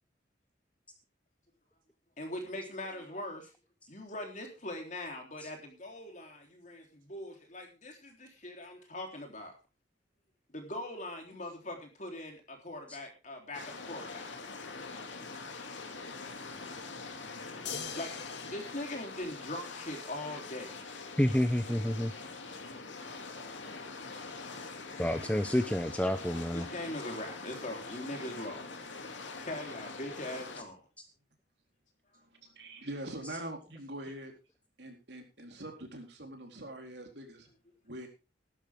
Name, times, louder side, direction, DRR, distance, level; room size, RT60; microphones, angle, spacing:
voice 1, 2.2-3.5 3.9-9.5 10.5-14.3 17.9-18.2 18.5-20.8 26.5-28.7 29.4-30.8, left 1 dB, 40° left, 3 dB, 3.7 m, -41 dB
sound 1, 13.5-30.6, left 4 dB, 85° left, 2.6 m, -44 dB
voice 2, 16.2-17.9 28.2-28.3 31.1-31.2, right 1 dB, 50° right, 3 dB, 5.2 m, -60 dB
sound 2, 17.7-20.1 21.9-22.0, left 7 dB, 70° left, 2.3 m, -44 dB
voice 3, 21.2-22.1 25.0-26.7, equal, 5° left, 8 dB, 0.7 m, -29 dB
voice 4, 32.3-34.3 34.8-37.5 37.8-38.1, right 1 dB, 65° right, 3 dB, 3.9 m, -43 dB
16.0 x 12.0 x 3.7 m, 0.31 s
head